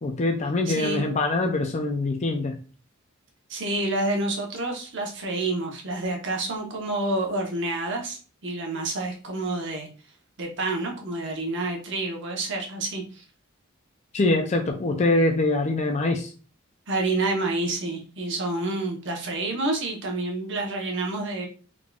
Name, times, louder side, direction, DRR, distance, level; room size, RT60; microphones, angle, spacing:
voice 1, 0.0-2.6 14.1-16.3, left 2 dB, 35° left, 3 dB, 0.5 m, -24 dB
voice 2, 0.7-1.0 3.5-9.9 10.4-13.2 16.9-21.5, right 2 dB, 60° right, 1 dB, 1.0 m, -28 dB
3.7 x 3.6 x 2.4 m, 0.36 s
head